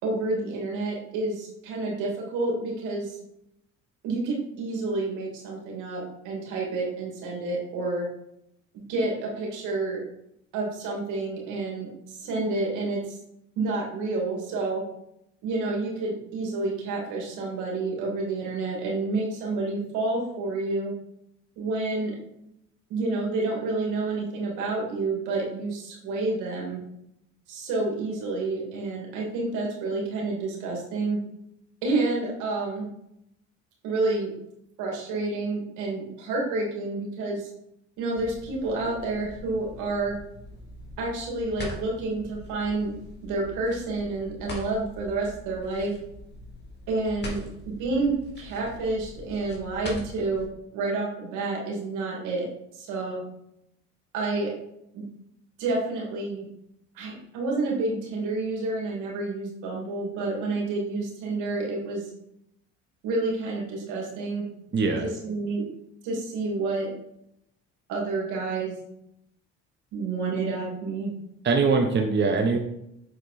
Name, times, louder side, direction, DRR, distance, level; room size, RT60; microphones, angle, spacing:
voice 1, 0.0-3.2 4.0-8.1 8.7-10.0 10.5-13.2 13.6-14.9 15.4-20.9 21.6-22.2 22.9-26.8 27.5-31.2 31.8-32.9 33.8-34.3 34.8-37.5 38.0-40.2 41.0-42.9 43.2-45.9 46.9-52.5 52.7-53.2 54.1-54.5 54.9-55.0 55.6-56.5 56.9-62.1 63.0-64.5 65.0-65.6 66.0-66.9 67.9-68.7 69.9-71.1, right 3 dB, 80° right, -2 dB, 2.5 m, -29 dB
sound 1, 38.2-50.5, left 2 dB, 35° left, 2.3 m, -42 dB
voice 2, 64.7-65.1 71.4-72.6, right 4 dB, 35° right, 3 dB, 0.9 m, -22 dB
6.9 x 4.5 x 4.2 m, 0.79 s
supercardioid pair, 80°, 30 cm